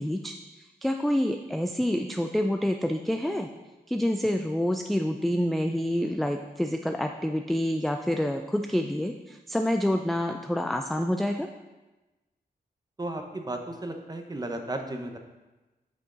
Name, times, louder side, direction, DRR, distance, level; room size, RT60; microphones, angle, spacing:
voice 1, 0.0-3.5 3.9-11.5, equal, ahead, 5 dB, 0.3 m, -27 dB
voice 2, 13.0-15.2, right 1 dB, 25° right, 4 dB, 0.9 m, -34 dB
8.5 x 6.1 x 3.8 m, 1.1 s
wide cardioid pair, 115°, 17 cm